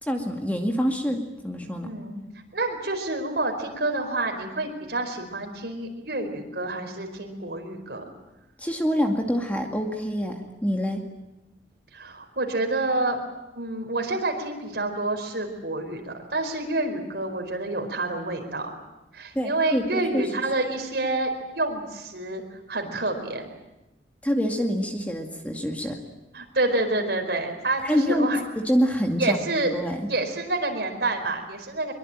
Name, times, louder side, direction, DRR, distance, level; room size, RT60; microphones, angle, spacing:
voice 1, 0.0-1.9 8.6-11.0 19.3-20.3 24.2-26.0 27.8-29.4 29.7-30.1, equal, 10° left, 3 dB, 2.2 m, -26 dB
voice 2, 1.8-2.2 2.5-8.0 11.9-13.2 13.5-18.7 19.1-22.4 22.7-23.5 26.3-28.4 29.2-29.7 30.1-31.9, right 2 dB, 65° right, 4 dB, 4.7 m, -28 dB
23.0 x 23.0 x 9.0 m, 0.98 s
head